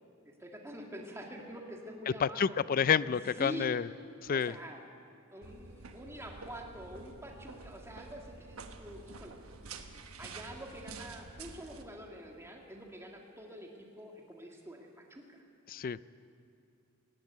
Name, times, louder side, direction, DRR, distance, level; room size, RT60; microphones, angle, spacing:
voice 1, 0.3-2.6 3.0-3.8 4.3-4.8 5.3-9.4 10.2-15.4, equal, 15° right, 1 dB, 1.8 m, -46 dB
voice 2, 2.1-3.9 4.2-4.6 15.7-16.0, left 7 dB, 40° left, 18 dB, 0.4 m, -29 dB
sound 1, 5.4-11.8, right 4 dB, 75° right, 1.3 m, -49 dB
18.0 x 16.0 x 9.3 m, 2.5 s
head